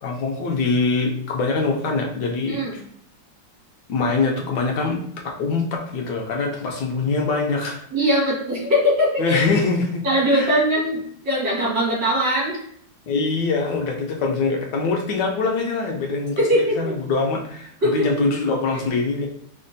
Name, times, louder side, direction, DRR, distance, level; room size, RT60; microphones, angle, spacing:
voice 1, 0.0-2.8 3.9-5.0 5.4-7.8 9.2-10.0 10.3-10.6 13.1-19.3, left 4 dB, 75° left, 0 dB, 1.2 m, -23 dB
voice 2, 7.9-9.4 10.0-12.6 16.4-17.0 17.8-18.1, equal, 80° right, -6 dB, 2.4 m, -21 dB
5.2 x 2.1 x 2.6 m, 0.64 s
omnidirectional pair, 1.9 m